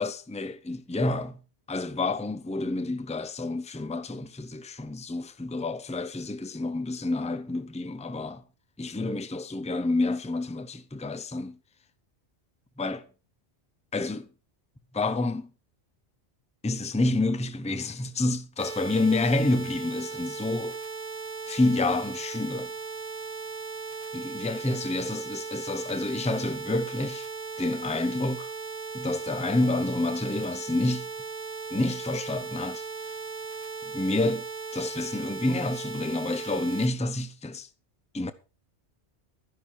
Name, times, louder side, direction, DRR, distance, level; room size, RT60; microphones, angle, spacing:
voice 1, 0.0-1.4 1.7-8.4 8.8-11.6 12.8-13.1 13.9-14.3 14.9-15.5 16.6-20.8 21.5-22.7 24.1-27.3 27.6-28.5 28.9-31.1 31.7-33.2 33.8-34.5 34.7-37.7 38.1-38.3, left 2 dB, 5° left, 0.7 m, -29 dB
sound 1, 18.6-36.9, right 4 dB, 35° right, 1.2 m, -37 dB
12.5 x 11.0 x 4.6 m
omnidirectional pair, 1.2 m